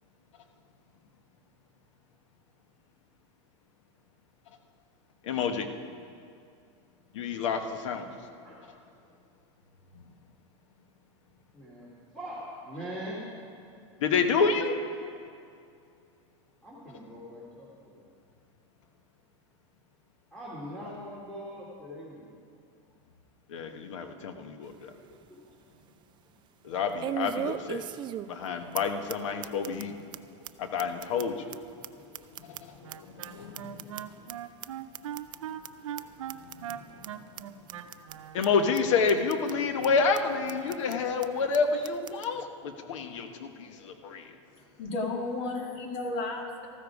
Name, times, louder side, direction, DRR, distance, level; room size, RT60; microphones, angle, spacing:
voice 1, 5.3-5.7 7.1-8.1 14.0-14.8 23.5-24.9 26.6-27.8 28.3-29.9 30.6-31.5 32.4-34.0 38.3-44.3, left 5 dB, 75° left, 7 dB, 1.3 m, -29 dB
voice 2, 11.5-13.2 16.6-18.1 20.3-22.3 25.3-25.4, equal, 5° left, -9 dB, 3.0 m, -42 dB
sound 1, 24.6-24.7 25.2-25.3 27.0-28.5 28.7-28.8 29.1-29.2 29.4-29.8 30.1-30.2 30.4-30.5 30.8-32.9 33.2-34.3 34.6-34.7 34.9-35.4 35.6-35.7 36.0-36.1 36.3-36.7 37.0-37.1 37.4-37.5 37.7-38.1 38.4-38.5 38.8-38.9 39.1-39.5 39.8-39.9 40.1-40.2 40.5-40.9 41.2-41.3 41.5-41.6 41.8-42.3, right 11 dB, 30° right, 0.4 m, -37 dB
Wind instrument woodwind instrument, 32.8-38.4, right 10 dB, 85° right, 0.7 m, -40 dB
voice 3, 44.5-46.7, left 2 dB, 50° left, 1 dB, 2.3 m, -33 dB
14.0 x 13.0 x 4.9 m, 2.4 s
supercardioid pair, 125°, 16 cm